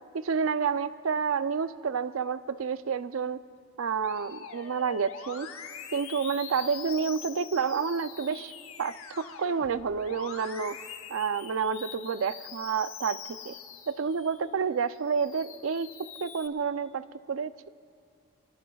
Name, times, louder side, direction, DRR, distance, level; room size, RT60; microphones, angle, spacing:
voice 1, 0.1-3.4 3.8-5.5 5.9-8.5 8.8-10.8 11.1-13.2 13.5-13.6 13.9-17.7, right 6 dB, 65° right, 14 dB, 0.4 m, -29 dB
Musical instrument, 4.0-14.5 14.9-16.5, left 7 dB, 70° left, 1.0 m, -44 dB
25.5 x 19.5 x 2.3 m, 2.2 s
head